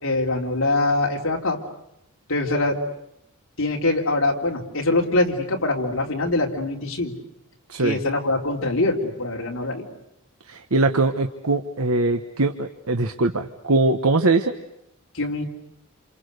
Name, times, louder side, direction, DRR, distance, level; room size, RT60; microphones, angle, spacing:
voice 1, 0.0-1.6 2.3-2.8 3.6-7.1 7.8-9.9 15.1-15.4, left 2 dB, 65° left, -1 dB, 3.5 m, -23 dB
voice 2, 10.5-14.5, right 2 dB, 80° right, 6 dB, 1.2 m, -21 dB
28.5 x 28.0 x 6.7 m, 0.79 s
head